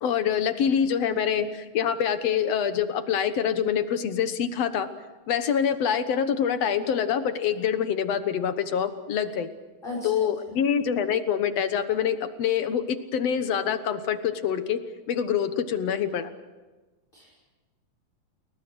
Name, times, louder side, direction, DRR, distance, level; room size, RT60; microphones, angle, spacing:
voice 1, 0.0-4.9 5.3-9.5 10.0-14.8 15.1-16.3, left 8 dB, 60° left, 10 dB, 1.9 m, -25 dB
voice 2, 9.8-10.6 17.1-17.3, left 2 dB, 15° left, -4 dB, 6.2 m, -38 dB
30.0 x 22.0 x 6.3 m, 1.2 s
omnidirectional pair, 4.0 m